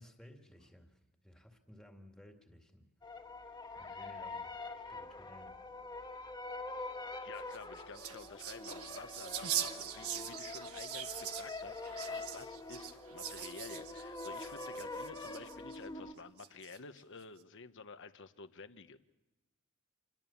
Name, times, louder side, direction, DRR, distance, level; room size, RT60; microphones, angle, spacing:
voice 1, 0.0-2.9 3.7-5.6, left 1 dB, ahead, 3 dB, 2.2 m, -58 dB
Warped Melody, 3.0-16.1, left 3 dB, 20° left, 1.9 m, -45 dB
voice 2, 3.8-4.2 7.2-19.0, left 4 dB, 60° left, 10 dB, 1.2 m, -52 dB
sound 1, 7.4-15.8 16.4-17.0, right 10 dB, 85° right, 1.3 m, -42 dB
27.5 x 22.0 x 7.2 m, 0.98 s
head